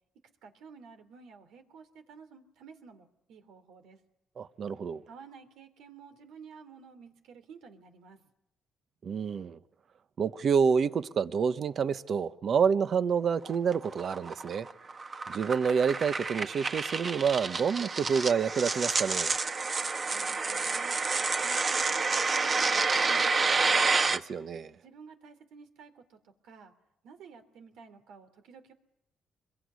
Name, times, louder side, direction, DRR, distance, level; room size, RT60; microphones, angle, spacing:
voice 1, 0.4-4.0 5.1-8.3 20.1-21.0 21.4-23.7 24.8-26.7 27.0-28.7, right 5 dB, 85° right, 3.2 m, -52 dB
voice 2, 4.4-5.0 9.0-9.6 10.2-14.7 15.3-19.3 24.1-24.7, right 6 dB, 55° right, 1.2 m, -28 dB
sound 1, 13.5-24.2, right 4 dB, 35° right, 1.5 m, -29 dB
26.5 x 22.5 x 9.7 m
cardioid pair, 90°, 0 cm